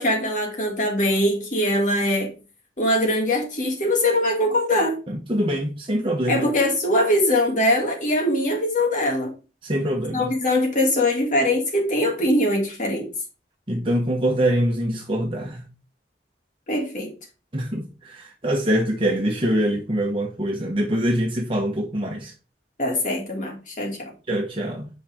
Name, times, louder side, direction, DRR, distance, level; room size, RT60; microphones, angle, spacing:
voice 1, 0.0-2.3 2.8-5.0 6.3-9.3 10.1-13.1 16.7-17.1 22.8-24.1, left 1 dB, 45° left, 2.7 m, -22 dB
voice 2, 5.1-6.5 9.6-10.3 13.7-15.6 17.5-22.3 24.3-24.9, right 1 dB, 30° right, 1.3 m, -24 dB
10.5 x 5.7 x 3.7 m
head